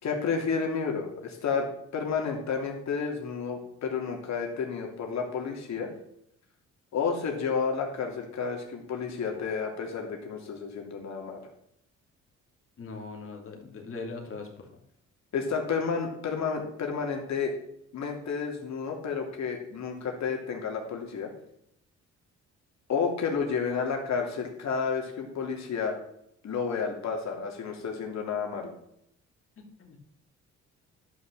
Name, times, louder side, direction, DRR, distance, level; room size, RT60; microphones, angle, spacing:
voice 1, 0.0-1.7 1.9-5.9 6.9-11.4 15.3-17.5 17.9-21.3 22.9-26.0 26.4-28.7, left 5 dB, 65° left, 2 dB, 3.0 m, -31 dB
voice 2, 12.8-14.5 29.8-30.0, left 3 dB, 45° left, 1 dB, 2.9 m, -40 dB
11.5 x 6.0 x 6.7 m, 0.74 s
cardioid pair, 90°, 30 cm